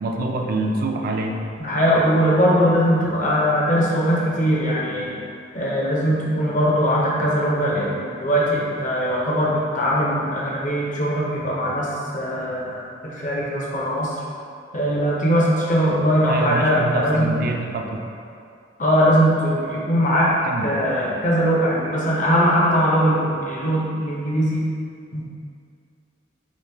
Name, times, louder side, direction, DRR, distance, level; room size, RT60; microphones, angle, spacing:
voice 1, 0.0-1.4 16.3-18.1 20.4-20.7, right 2 dB, 50° right, 2 dB, 0.3 m, -25 dB
voice 2, 1.6-5.1 5.5-11.9 12.1-14.2 14.7-17.3 18.8-20.3 20.6-24.7 25.1-25.2, equal, 40° left, -5 dB, 0.6 m, -20 dB
3.1 x 2.5 x 3.3 m, 2.4 s
head